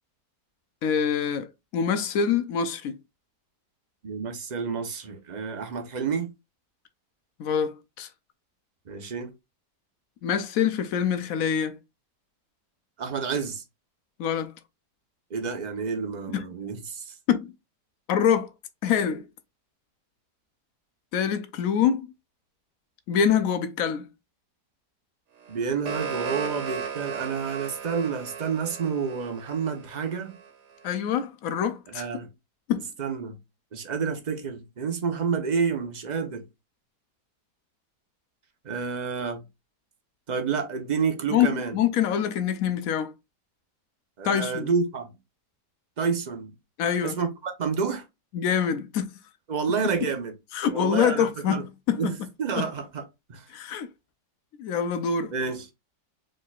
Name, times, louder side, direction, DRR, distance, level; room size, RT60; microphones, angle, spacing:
voice 1, 0.8-3.0 7.4-8.1 10.2-11.8 14.2-14.5 16.3-16.4 17.3-17.5 18.1-18.5 18.8-19.3 21.1-22.1 23.1-24.1 30.8-32.0 32.7-32.9 41.3-43.1 44.2-44.7 46.8-47.2 48.3-49.1 50.0-50.1 50.5-52.1 52.6-52.7 53.5-53.9 54.6-55.3, left 8 dB, 70° left, 0.9 m, -25 dB
voice 2, 4.0-6.3 8.9-9.3 13.0-13.6 15.3-17.1 25.5-30.4 31.9-32.3 33.0-33.4 33.7-36.4 38.6-39.4 40.3-41.8 44.2-45.1 46.0-46.5 47.0-48.0 49.5-50.3 50.7-51.6 52.0-53.0 53.3-53.5 55.3-55.7, right 5 dB, 45° right, 0.5 m, -29 dB
sound 1, 25.4-30.5, right 7 dB, 70° right, 1.6 m, -35 dB
4.3 x 3.6 x 2.3 m
omnidirectional pair, 1.8 m